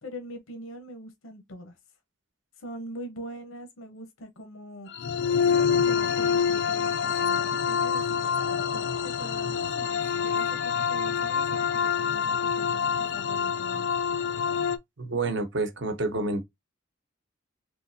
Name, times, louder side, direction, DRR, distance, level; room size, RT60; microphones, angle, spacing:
voice 1, 0.0-1.8 2.6-4.9 5.7-13.9, equal, 85° left, 0.8 m, -43 dB
sound 1, 4.9-14.8, left 6 dB, 60° left, 0.4 m, -26 dB
voice 2, 15.0-16.4, right 2 dB, 60° right, 0.9 m, -28 dB
3.7 x 2.9 x 2.6 m
head